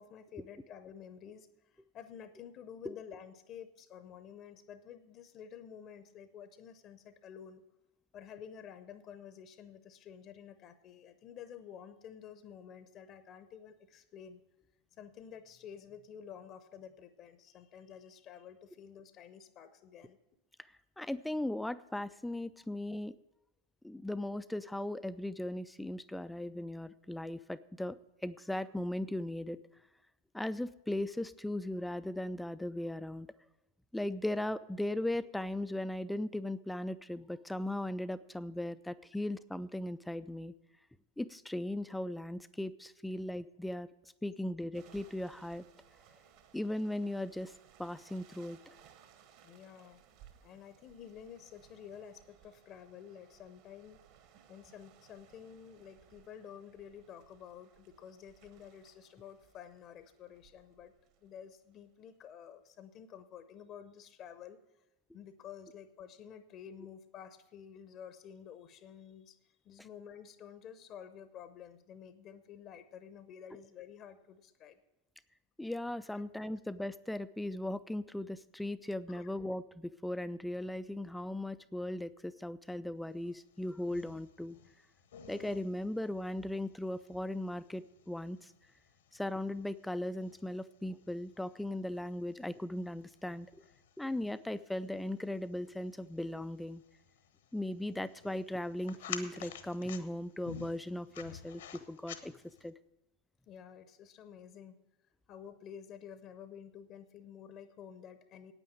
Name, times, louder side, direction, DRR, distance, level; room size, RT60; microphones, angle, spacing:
voice 1, 0.0-7.6 8.1-14.4 14.9-20.2 22.6-22.7 49.4-50.0 50.4-54.0 54.5-60.9 61.2-64.8 65.1-69.4 69.6-74.8 76.1-76.2 79.1-79.3 103.5-104.7 105.3-108.5, left 8 dB, 35° left, 12 dB, 0.7 m, -51 dB
voice 2, 21.0-23.1 23.8-28.0 28.2-29.6 30.3-33.3 33.9-40.5 41.2-43.9 44.2-45.6 46.5-47.5 47.8-48.6 75.6-84.6 85.3-88.5 89.1-93.5 94.0-96.8 97.5-101.6 101.9-102.3 102.6-102.7, left 1 dB, 5° left, 14 dB, 0.3 m, -38 dB
sound 1, 44.7-62.2, right 9 dB, 45° right, 1.2 m, -63 dB
sound 2, 83.3-102.7, left 8 dB, 60° left, 1.0 m, -52 dB
9.1 x 9.1 x 7.7 m, 0.91 s
figure-of-eight pair, 90°, 0 cm